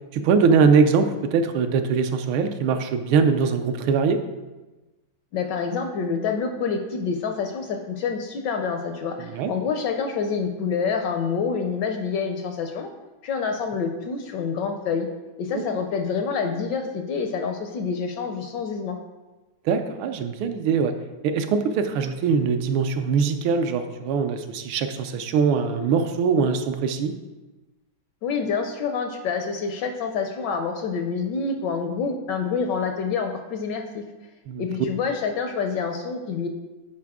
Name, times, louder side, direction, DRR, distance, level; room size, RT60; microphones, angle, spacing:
voice 1, 0.1-4.2 9.3-9.5 19.6-20.9 21.2-27.1 34.5-34.7, right 5 dB, 80° right, 8 dB, 1.4 m, -22 dB
voice 2, 5.3-12.9 13.2-15.1 15.4-19.0 28.2-34.0 34.6-36.5, left 5 dB, 75° left, 5 dB, 1.1 m, -27 dB
9.5 x 4.6 x 3.5 m, 1.1 s
omnidirectional pair, 2.3 m